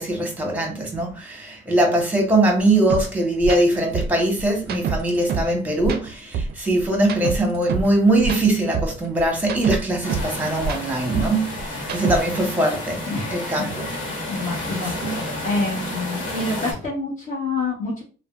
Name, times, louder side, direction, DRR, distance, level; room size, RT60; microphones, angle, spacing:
voice 1, 0.0-13.9 14.8-15.2, right 1 dB, 10° right, 1.0 m, -21 dB
sound 1, 2.9-3.0 3.4-3.6 3.9-5.5 5.8-7.9 8.2-10.3 10.6-12.4, right 6 dB, 55° right, 0.4 m, -27 dB
sound 2, 10.0-16.7, left 2 dB, 90° left, 1.0 m, -31 dB
voice 2, 13.1-13.7 14.3-18.0, left 3 dB, 40° left, 1.0 m, -27 dB
3.3 x 2.0 x 2.4 m
cardioid pair, 90°, 20 cm